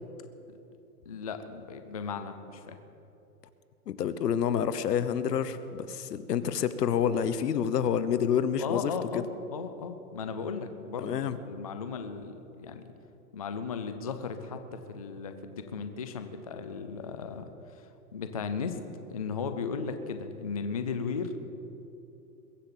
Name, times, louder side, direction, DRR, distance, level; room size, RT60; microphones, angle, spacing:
voice 1, 1.1-2.8 8.6-12.8 13.3-18.8 19.1-21.3, left 5 dB, 25° left, 8 dB, 0.3 m, -36 dB
voice 2, 3.9-9.2 11.0-11.4, left 8 dB, 85° left, 13 dB, 1.1 m, -28 dB
22.0 x 7.8 x 7.3 m, 2.9 s
hypercardioid pair, 160°, 47 cm